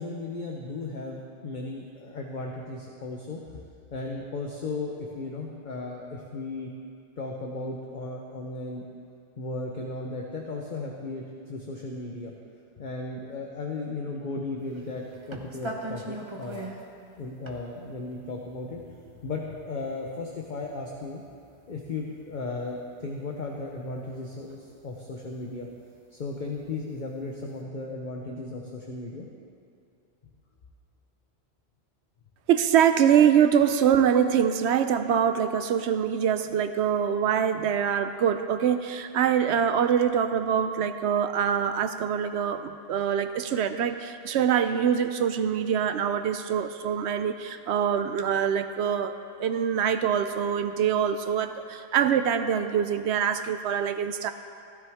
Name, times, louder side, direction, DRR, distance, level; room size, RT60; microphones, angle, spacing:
voice 1, 0.0-3.6 3.9-6.7 7.2-8.8 9.4-12.3 12.8-16.7 17.2-18.8 19.2-21.2 21.7-25.7 26.1-29.3, left 3 dB, 45° left, -1 dB, 1.0 m, -35 dB
sound 1, 14.7-22.8 23.0-26.7 27.2-27.6, right 1 dB, 30° right, 1.0 m, -42 dB
voice 2, 32.5-54.3, right 8 dB, 80° right, 10 dB, 0.9 m, -24 dB
15.5 x 12.5 x 3.6 m, 2.4 s
omnidirectional pair, 1.1 m